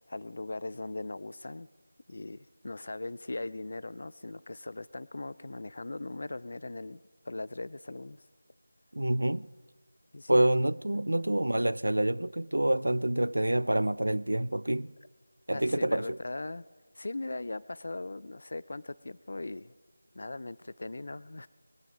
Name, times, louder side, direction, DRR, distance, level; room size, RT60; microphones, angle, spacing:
voice 1, 0.1-1.7 2.1-8.2 10.1-10.4 15.5-16.6 16.9-19.7 20.1-21.5, left 2 dB, 50° left, 0.3 m, -39 dB
voice 2, 8.9-9.5 10.3-14.9 15.5-16.2, right 1 dB, 75° right, 0.4 m, -27 dB
21.5 x 9.2 x 5.0 m
figure-of-eight pair, 170°, 0 cm